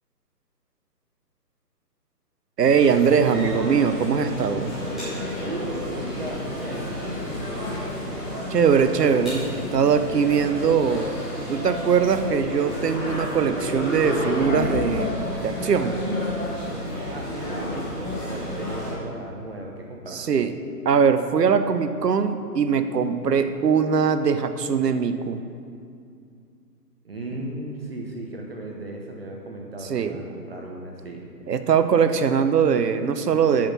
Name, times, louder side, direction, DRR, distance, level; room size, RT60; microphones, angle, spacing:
sound 1, 2.6-18.9, left 1 dB, ahead, 0.9 m, -30 dB
voice 1, 2.6-4.7 8.5-11.1 11.5-15.1 15.4-16.0 20.1-20.5 20.9-25.4 27.3-27.4 29.9-30.2 31.5-33.7, right 6 dB, 70° right, 9 dB, 0.8 m, -21 dB
voice 2, 5.4-7.2 17.0-20.2 27.0-31.3, right 2 dB, 35° right, 0 dB, 0.8 m, -36 dB
8.8 x 6.1 x 5.9 m, 2.4 s
hypercardioid pair, 160°, 49 cm